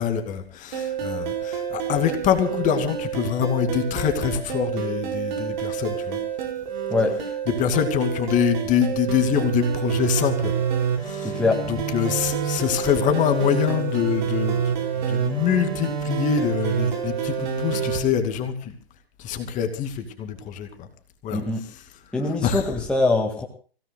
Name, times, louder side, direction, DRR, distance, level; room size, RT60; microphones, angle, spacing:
voice 1, 0.0-6.2 7.6-10.5 11.0-11.3 11.7-14.6 15.1-18.7 19.2-20.9 21.2-21.4 22.4-22.6, left 8 dB, 25° left, 6 dB, 2.5 m, -24 dB
sound 1, 0.7-18.0, right 7 dB, 50° right, 4.7 m, -28 dB
voice 2, 11.2-11.6 21.3-21.6 22.1-23.4, left 3 dB, 5° left, -1 dB, 2.0 m, -23 dB
29.5 x 17.0 x 2.3 m, 0.39 s
hypercardioid pair, 130°, 31 cm